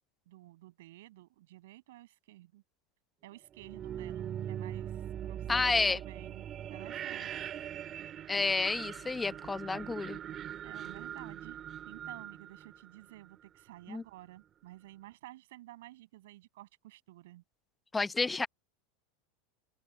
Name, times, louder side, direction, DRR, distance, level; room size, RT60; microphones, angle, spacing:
voice 1, 0.3-2.6 3.2-7.4 10.6-11.6 11.9-17.4, right 16 dB, 80° right, 7.1 m, -53 dB
sound 1, 3.5-13.4, right 10 dB, 30° right, 1.9 m, -41 dB
voice 2, 5.5-6.0 8.3-10.2 13.9-14.0 17.9-18.5, left 3 dB, 10° left, 0.9 m, -30 dB
supercardioid pair, 140°, 0 cm